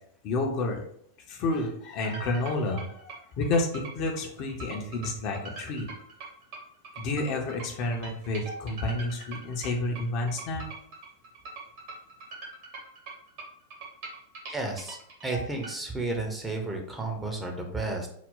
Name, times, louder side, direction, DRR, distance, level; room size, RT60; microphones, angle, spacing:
voice 1, 0.2-0.8 1.3-5.9 7.0-10.7, left 2 dB, 40° left, 1 dB, 0.6 m, -30 dB
sound 1, 2.0-15.7, right 3 dB, 50° right, 1.1 m, -43 dB
voice 2, 14.5-18.1, right 2 dB, 10° right, 2 dB, 0.7 m, -32 dB
4.0 x 2.2 x 3.7 m, 0.68 s
figure-of-eight pair, 90°, 0 cm